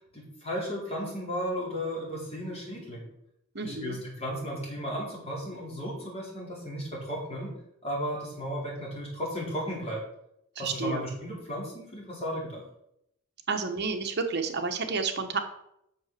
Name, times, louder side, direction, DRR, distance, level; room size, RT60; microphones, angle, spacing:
voice 1, 0.1-3.0 3.6-7.5 7.8-10.0 10.6-12.6, equal, 30° left, -4 dB, 4.4 m, -34 dB
voice 2, 3.5-4.0 10.6-11.0 13.5-15.4, right 4 dB, 50° right, 6 dB, 1.1 m, -30 dB
8.9 x 6.7 x 6.8 m, 0.79 s
head